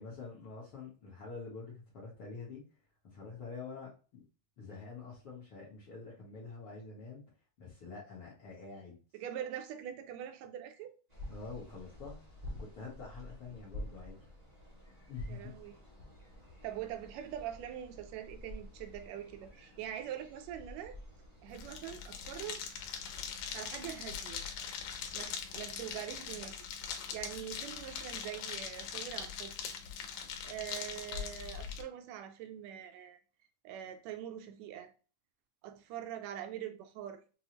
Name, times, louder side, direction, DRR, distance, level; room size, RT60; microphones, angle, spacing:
voice 1, 0.0-2.6 3.0-4.2 4.6-7.2 7.6-9.0 11.3-12.2 12.4-14.2 15.1-15.5, left 4 dB, 65° left, 1.4 m, -46 dB
voice 2, 9.1-10.9 15.3-15.8 16.6-21.0 21.4-22.6 23.4-24.4 24.8-26.6 26.9-29.5 30.0-33.2 33.6-34.9 35.6-37.2, right 10 dB, 80° right, 1.6 m, -43 dB
sound 1, 11.1-26.4, left 1 dB, 30° right, 0.7 m, -50 dB
sound 2, 21.5-31.8, left 7 dB, 85° left, 2.2 m, -42 dB
5.9 x 2.0 x 2.8 m
omnidirectional pair, 3.5 m